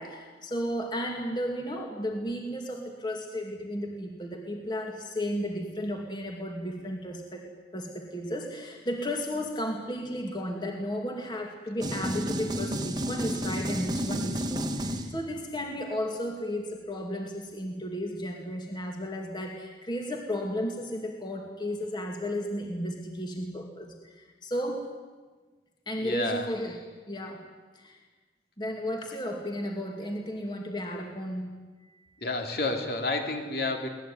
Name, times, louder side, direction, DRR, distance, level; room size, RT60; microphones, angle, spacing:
voice 1, 0.0-24.9 25.9-26.8 27.1-27.5 27.7-28.0 28.6-31.6, equal, 25° left, 2 dB, 2.5 m, -34 dB
sound 1, 11.8-15.5, equal, 25° right, 1.6 m, -31 dB
voice 2, 26.0-26.5 32.2-33.9, left 2 dB, 55° left, 4 dB, 3.4 m, -30 dB
24.5 x 19.0 x 9.4 m, 1.3 s
head